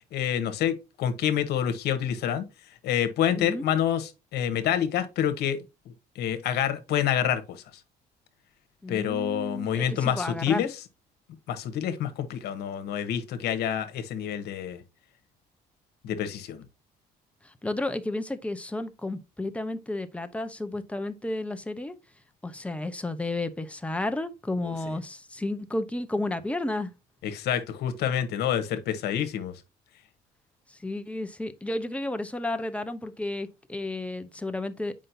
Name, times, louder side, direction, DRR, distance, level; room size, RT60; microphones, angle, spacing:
voice 1, 0.1-2.4 2.8-5.6 6.1-7.6 8.9-10.7 11.5-14.8 16.0-16.6 24.6-24.7 27.2-29.5, left 9 dB, 75° left, 1.2 m, -27 dB
voice 2, 3.3-3.7 8.8-10.6 17.4-22.0 22.4-26.9 30.7-34.9, left 2 dB, 5° left, 0.8 m, -32 dB
7.5 x 5.3 x 2.7 m
cardioid pair, 110°, 17 cm